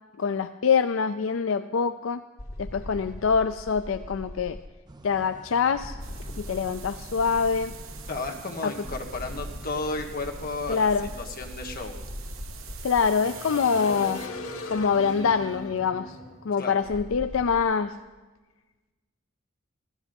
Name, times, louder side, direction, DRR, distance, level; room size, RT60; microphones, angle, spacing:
voice 1, 0.2-2.2 2.6-4.6 5.0-6.0 6.4-7.7 8.6-8.7 10.7-11.1 12.8-14.2 14.7-16.2 16.4-18.0, left 6 dB, 70° left, 9 dB, 0.4 m, -25 dB
sound 1, 2.4-4.7 5.8-8.3 8.8-17.6, left 1 dB, 90° left, 1.9 m, -40 dB
sound 2, 4.9-11.2, right 2 dB, 20° right, 0.5 m, -49 dB
sound 3, 6.0-14.3, right 8 dB, 75° right, 0.9 m, -46 dB
voice 2, 8.1-10.9 11.2-11.9 16.6-16.7, left 3 dB, 45° left, 2 dB, 1.6 m, -33 dB
16.5 x 12.5 x 5.3 m, 1.2 s
head